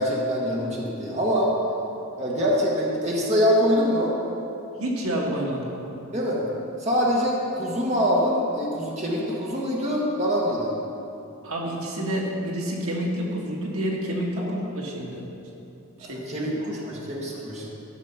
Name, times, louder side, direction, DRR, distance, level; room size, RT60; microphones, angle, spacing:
voice 1, 0.0-1.5 2.2-4.1 6.1-6.4 6.8-10.7 14.4-14.5 16.3-17.7, equal, 30° right, -4 dB, 1.4 m, -24 dB
voice 2, 4.8-5.7 11.4-15.2 16.0-16.5, equal, 75° right, -2 dB, 1.6 m, -29 dB
12.0 x 6.3 x 5.7 m, 2.9 s
head